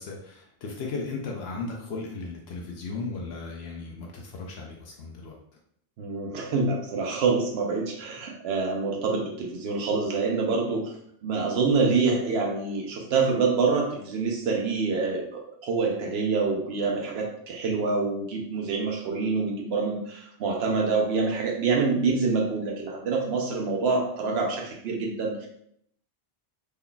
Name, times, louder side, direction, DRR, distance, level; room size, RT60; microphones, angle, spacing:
voice 1, 0.0-5.3, left 3 dB, 80° left, 0 dB, 0.8 m, -36 dB
voice 2, 6.0-10.9 11.2-25.5, right 4 dB, 85° right, 0 dB, 0.9 m, -26 dB
3.2 x 2.2 x 3.8 m, 0.71 s
omnidirectional pair, 1.0 m